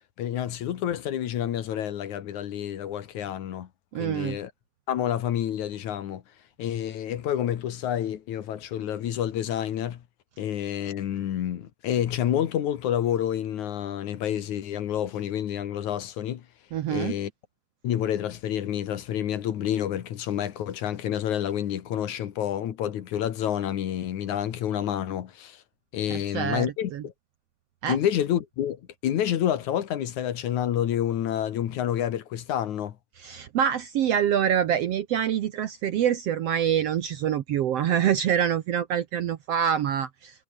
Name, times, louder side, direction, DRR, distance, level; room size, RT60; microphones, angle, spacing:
voice 1, 0.2-3.7 4.0-4.5 4.9-6.2 6.6-10.0 10.4-16.5 16.9-17.3 17.8-25.6 25.9-27.1 27.9-33.0, left 10 dB, 65° left, 2.8 m, -28 dB
voice 2, 3.9-4.4 16.7-17.1 26.1-26.7 26.9-27.0 27.8-28.0 33.2-40.4, right 9 dB, 65° right, 1.7 m, -25 dB
omnidirectional pair, 3.8 m